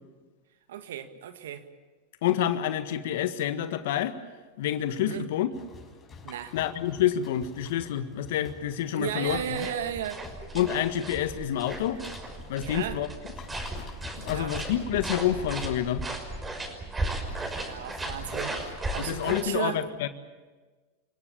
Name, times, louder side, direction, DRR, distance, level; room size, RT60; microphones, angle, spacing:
voice 1, 0.7-1.7 5.0-5.3 6.2-6.5 8.9-10.2 12.6-13.0 14.1-14.5 17.2-19.8, right 10 dB, 75° right, 9 dB, 1.8 m, -35 dB
voice 2, 2.2-4.2 4.6-5.5 6.5-9.6 10.5-12.0 12.5-13.1 14.2-16.0 19.0-20.1, left 11 dB, 70° left, 10 dB, 1.6 m, -28 dB
sound 1, 5.5-12.8 13.2-15.5 17.1-18.4, left 5 dB, 25° left, 6.8 m, -48 dB
sound 2, 9.2-19.4, right 2 dB, 15° right, 5.9 m, -36 dB
29.5 x 17.5 x 8.7 m, 1.3 s
hypercardioid pair, 100°, 0 cm